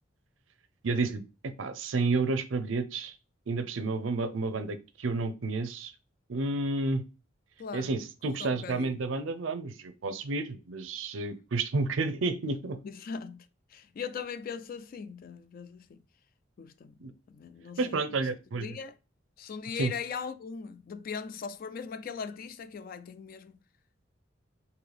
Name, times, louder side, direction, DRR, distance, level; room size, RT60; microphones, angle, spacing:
voice 1, 0.8-3.1 3.5-5.9 6.3-7.0 7.7-12.8 17.0-17.1 17.8-18.8 19.8-19.9, right 3 dB, 85° right, 0.5 m, -31 dB
voice 2, 7.6-7.9 8.2-8.9 12.8-13.5 13.7-16.0 16.6-16.9 17.3-18.3 18.6-19.0 19.4-23.5, left 6 dB, 50° left, 0.3 m, -40 dB
3.9 x 2.7 x 3.3 m
head